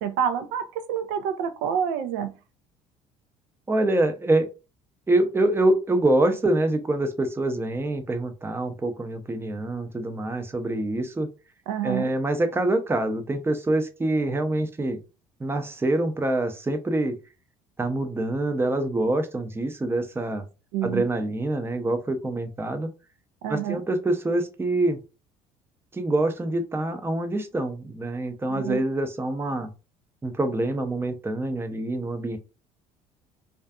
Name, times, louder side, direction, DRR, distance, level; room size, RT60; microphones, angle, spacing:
voice 1, 0.0-2.3 11.7-12.1 20.7-21.0 23.4-23.8 28.5-28.8, right 8 dB, 65° right, 0.4 m, -28 dB
voice 2, 3.7-4.5 5.1-11.3 11.8-15.0 15.4-17.2 17.8-20.4 20.8-22.9 23.5-25.0 25.9-29.7 30.2-32.4, right 2 dB, 15° right, 0.5 m, -25 dB
2.5 x 2.4 x 2.2 m
hypercardioid pair, 60°, 18 cm